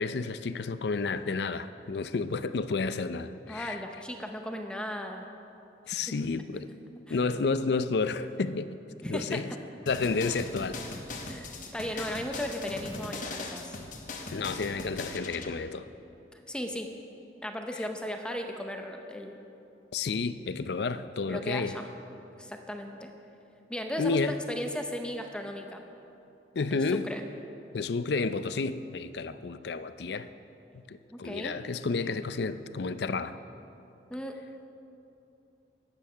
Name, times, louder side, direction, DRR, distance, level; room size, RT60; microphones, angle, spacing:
voice 1, 0.0-3.8 5.9-6.7 7.1-8.7 9.0-9.5 9.9-10.8 14.3-15.9 19.9-21.8 24.0-24.4 26.5-27.1 27.7-30.3 30.7-33.4, left 4 dB, 65° left, 12 dB, 0.5 m, -31 dB
voice 2, 3.5-5.3 7.1-7.3 9.0-9.4 11.3-13.7 16.3-16.9 17.4-19.3 21.2-21.9 22.4-23.1 23.7-25.8 26.7-27.2 31.1-31.6 34.1-34.5, left 1 dB, 5° left, 4 dB, 0.7 m, -36 dB
sound 1, 9.9-15.5, left 3 dB, 45° left, 1.0 m, -40 dB
13.0 x 8.8 x 5.6 m, 2.9 s
head